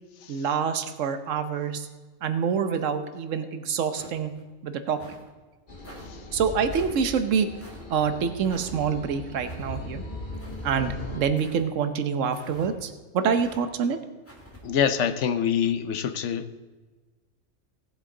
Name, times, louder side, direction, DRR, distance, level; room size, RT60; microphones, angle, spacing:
voice 1, 0.3-1.9 2.2-4.3 4.6-5.0 6.3-7.5 7.9-10.0 10.6-14.0, right 6 dB, 75° right, 9 dB, 1.2 m, -26 dB
sound 1, 3.9-4.4 4.9-5.3 5.8-6.1 6.7-7.0 7.6-7.8 8.4-8.7 9.4-9.7 10.3-10.8 11.4-11.7 12.3-12.7 13.3-13.6 14.3-14.6, equal, 10° left, 2.0 m, -47 dB
sound 2, 5.7-11.2, left 1 dB, 40° left, 1.7 m, -39 dB
voice 2, 14.6-16.6, left 8 dB, 70° left, 10 dB, 1.0 m, -25 dB
17.5 x 8.1 x 3.9 m, 1.3 s
omnidirectional pair, 1.3 m